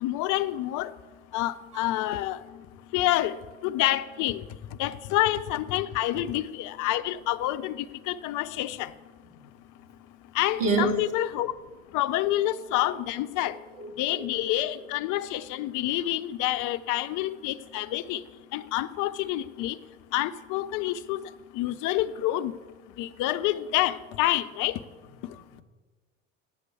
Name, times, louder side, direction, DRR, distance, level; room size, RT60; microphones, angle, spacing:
voice 1, 0.0-0.9 1.3-2.4 2.9-3.4 3.6-4.4 4.8-8.9 10.3-11.5 11.9-13.5 14.0-18.2 18.5-19.8 20.1-21.2 21.5-22.5 23.0-24.8, left 14 dB, 50° left, 14 dB, 0.6 m, -28 dB
voice 2, 10.6-11.0 13.8-14.2, right 3 dB, 75° right, 2 dB, 2.5 m, -27 dB
8.5 x 8.2 x 8.2 m, 1.4 s
hypercardioid pair, 65°, 39 cm